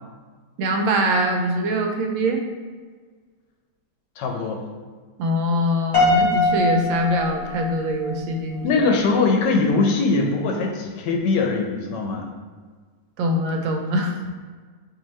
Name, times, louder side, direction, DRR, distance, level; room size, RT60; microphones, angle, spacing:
voice 1, 0.6-2.4 5.2-8.7 13.2-14.2, equal, 90° right, 2 dB, 1.4 m, -23 dB
voice 2, 4.2-4.6 8.6-12.3, left 3 dB, 75° left, 2 dB, 1.1 m, -21 dB
Piano, 5.9-8.2, left 2 dB, 45° left, 1.1 m, -21 dB
4.6 x 2.9 x 3.1 m, 1.5 s
omnidirectional pair, 2.0 m